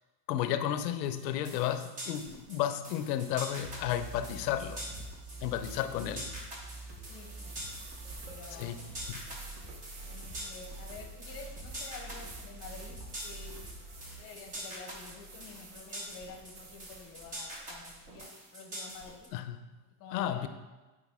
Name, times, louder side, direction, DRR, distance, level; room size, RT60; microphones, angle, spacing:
voice 1, 0.3-5.1 5.4-6.3 8.6-8.7 9.1-9.3 19.3-19.6 20.1-20.5, left 11 dB, 85° left, 10 dB, 0.7 m, -33 dB
sound 1, 1.2-19.3, equal, 15° right, 0.7 m, -45 dB
sound 2, 3.6-14.1, right 2 dB, 90° right, 2.4 m, -46 dB
sound 3, 7.0-18.2, right 3 dB, 40° right, 1.1 m, -52 dB
voice 2, 8.3-8.9 10.1-13.6 14.2-19.3 20.0-20.5, left 5 dB, 30° left, 3 dB, 0.8 m, -49 dB
9.6 x 4.9 x 3.6 m, 1.2 s
supercardioid pair, 170°, 49 cm